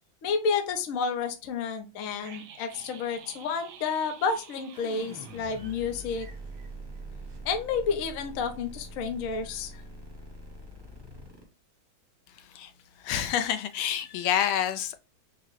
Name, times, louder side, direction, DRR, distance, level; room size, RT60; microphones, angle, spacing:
voice 1, 0.2-6.3 7.4-9.8, left 5 dB, 65° left, 0.8 m, -30 dB
sound 1, 2.2-7.0 7.3-7.4, right 7 dB, 80° right, 1.6 m, -50 dB
sound 2, 4.7-11.4, right 1 dB, 20° right, 0.8 m, -44 dB
voice 2, 12.4-12.7 13.0-15.0, left 10 dB, 80° left, 1.4 m, -28 dB
5.9 x 2.1 x 3.2 m
omnidirectional pair, 2.2 m